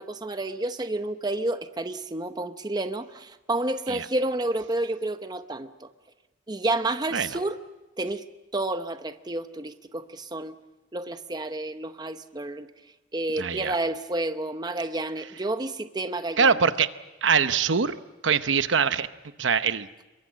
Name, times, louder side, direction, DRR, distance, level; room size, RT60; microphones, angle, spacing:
voice 1, 0.0-5.9 6.5-7.6 8.0-8.2 8.5-10.5 10.9-12.7 13.1-16.5, right 2 dB, 20° right, 9 dB, 0.8 m, -30 dB
voice 2, 13.4-13.7 16.4-16.9 17.2-18.0 18.2-19.1 19.4-19.9, right 6 dB, 80° right, 12 dB, 0.8 m, -23 dB
26.0 x 22.5 x 7.5 m, 1.1 s
head